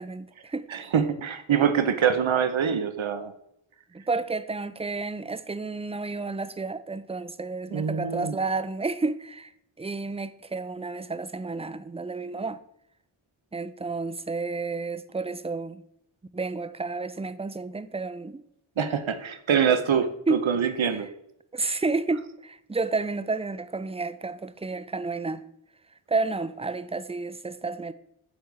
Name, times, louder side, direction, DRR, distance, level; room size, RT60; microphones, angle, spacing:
voice 1, 0.0-0.7 3.9-9.5 9.8-12.6 13.5-15.8 16.3-18.4 20.3-20.5 20.9-21.1 21.5-25.4 26.1-27.9, right 3 dB, 15° right, 0.4 m, -31 dB
voice 2, 0.7-3.3 7.7-8.4 18.8-21.1, right 7 dB, 75° right, 0.9 m, -24 dB
8.8 x 3.5 x 6.3 m
wide cardioid pair, 60°, 48 cm